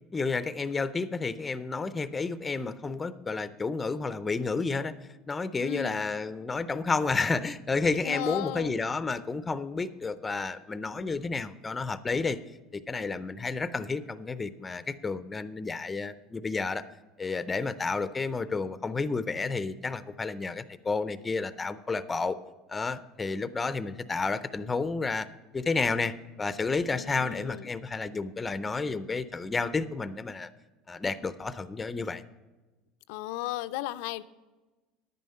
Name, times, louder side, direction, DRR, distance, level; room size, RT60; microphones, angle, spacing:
voice 1, 0.1-4.9 5.3-12.4 12.7-16.8 17.2-22.4 22.7-25.3 25.5-26.1 26.4-30.5 30.9-32.2, left 4 dB, 15° left, 14 dB, 0.5 m, -31 dB
voice 2, 5.6-6.0 8.0-8.7 26.9-27.7 33.1-34.2, left 14 dB, 80° left, 15 dB, 0.4 m, -35 dB
10.5 x 9.3 x 5.5 m, 1.2 s
supercardioid pair, 135°, 0 cm